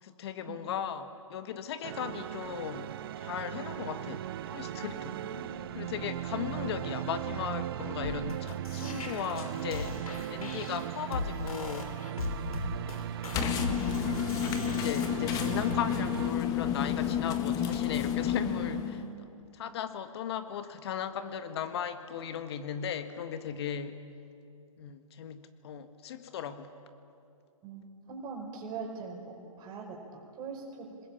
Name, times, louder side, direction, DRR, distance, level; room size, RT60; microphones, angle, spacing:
voice 1, 0.0-4.3 4.5-5.2 5.7-10.0 10.3-12.0 13.9-14.0 14.4-19.3 19.5-24.0 24.8-26.7, left 8 dB, 45° left, 9 dB, 1.7 m, -37 dB
sound 1, 1.8-16.3, right 12 dB, 40° right, 0.6 m, -38 dB
voice 2, 5.0-5.5 18.4-19.1 27.6-30.9, right 5 dB, 25° right, 0 dB, 5.1 m, -42 dB
sound 2, 8.0-15.8, left 3 dB, 75° left, 3.5 m, -39 dB
sound 3, 13.3-19.1, left 9 dB, 20° left, 1.4 m, -30 dB
27.0 x 21.0 x 8.7 m, 2.5 s
hypercardioid pair, 145°, 18 cm